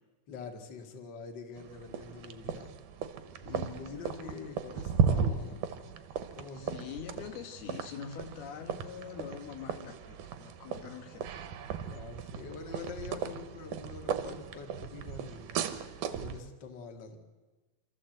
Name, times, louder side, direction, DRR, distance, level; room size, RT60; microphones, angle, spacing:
voice 1, 0.3-2.7 3.4-5.6 6.3-6.9 11.9-15.6 16.1-17.2, left 5 dB, 35° left, 3 dB, 2.1 m, -45 dB
sound 1, 1.6-16.4, right 7 dB, 70° right, 2.3 m, -36 dB
voice 2, 3.7-4.0 6.5-11.8, left 8 dB, 90° left, 4 dB, 3.6 m, -45 dB
27.5 x 14.0 x 7.9 m, 1.3 s
omnidirectional pair, 4.3 m